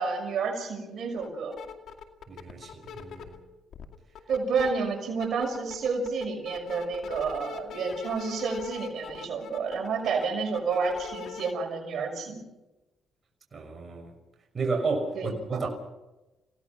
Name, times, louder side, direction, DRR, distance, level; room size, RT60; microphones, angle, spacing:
voice 1, 0.0-1.5 4.3-12.4 15.1-15.6, right 4 dB, 65° right, 5.9 m, -30 dB
sound 1, 1.2-3.4 3.7-4.7 5.1-11.5, left 8 dB, 70° left, 2.3 m, -42 dB
voice 2, 2.3-3.4 13.5-14.1 14.5-15.7, right 4 dB, 35° right, 6.2 m, -32 dB
29.0 x 17.5 x 6.0 m
cardioid pair, 90°, 0 cm